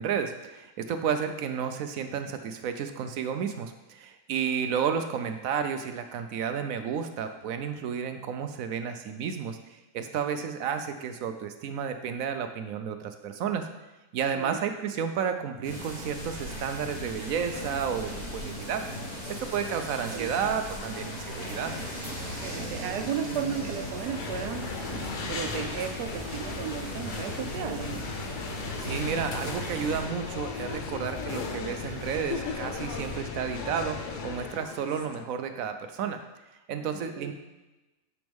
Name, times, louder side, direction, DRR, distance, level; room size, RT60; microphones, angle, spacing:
voice 1, 0.0-9.6 9.9-13.7 14.1-18.9 19.4-21.7 28.8-36.2 36.7-37.3, right 7 dB, 70° right, 8 dB, 0.9 m, -31 dB
sound 1, 15.6-30.0, equal, 35° left, 2.7 m, -38 dB
sound 2, 17.5-35.3, left 6 dB, 90° left, 1.2 m, -43 dB
voice 2, 22.4-28.0 36.9-37.3, right 8 dB, 85° right, 8 dB, 1.3 m, -34 dB
sound 3, 23.9-34.6, left 4 dB, 60° left, 0.5 m, -37 dB
9.4 x 6.2 x 3.5 m, 1.1 s
omnidirectional pair, 1.7 m